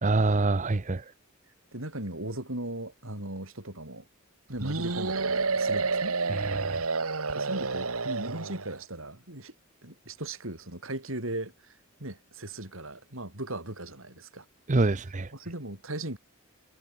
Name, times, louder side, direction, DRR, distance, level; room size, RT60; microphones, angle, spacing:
voice 1, 0.0-1.1 6.3-6.8 14.7-15.3, right 3 dB, 35° right, 0.7 m, -26 dB
voice 2, 1.7-4.1 4.5-6.2 7.3-9.5 9.8-14.4 15.3-16.2, right 1 dB, 65° right, 6.7 m, -38 dB
sound 1, 4.6-8.8, right 4 dB, 90° right, 2.1 m, -29 dB
head